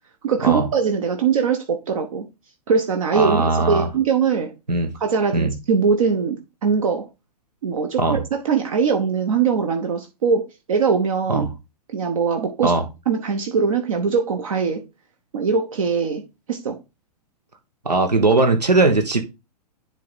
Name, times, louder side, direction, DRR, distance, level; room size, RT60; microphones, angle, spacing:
voice 1, 0.2-2.2 2.7-4.5 5.0-7.1 7.6-11.5 11.9-12.7 13.1-14.8 15.3-16.2 16.5-16.8, right 5 dB, 55° right, 1.1 m, -21 dB
voice 2, 3.1-3.9 4.7-4.9 5.3-5.5 8.0-8.2 11.3-11.5 12.6-12.8 17.8-19.2, right 3 dB, 80° right, 1.2 m, -19 dB
10.5 x 3.5 x 4.1 m
figure-of-eight pair, 110°, 21 cm